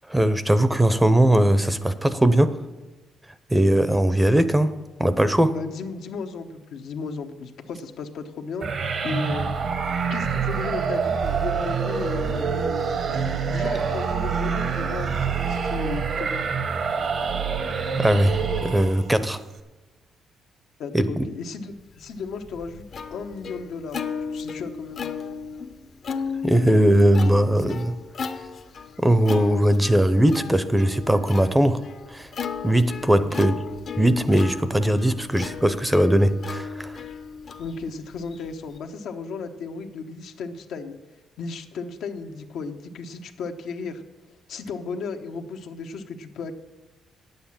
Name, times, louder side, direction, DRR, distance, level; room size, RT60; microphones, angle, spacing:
voice 1, 0.1-2.6 3.5-4.7 5.0-5.5 18.0-19.4 20.9-21.3 26.4-28.0 29.0-31.8 32.1-32.3 32.6-33.5 34.0-37.0, right 1 dB, 10° right, 0.7 m, -20 dB
voice 2, 5.5-8.7 9.0-9.5 10.1-12.5 13.5-16.4 20.8-22.8 23.1-24.0 24.3-25.0 33.1-33.5 37.6-41.0 41.4-46.5, left 4 dB, 75° left, 1.0 m, -35 dB
sound 1, 8.6-19.2, right 6 dB, 55° right, 1.0 m, -26 dB
Plucked string instrument, 22.0-38.8, left 6 dB, 55° left, 0.8 m, -35 dB
9.5 x 8.1 x 7.2 m
cardioid pair, 90°, 0 cm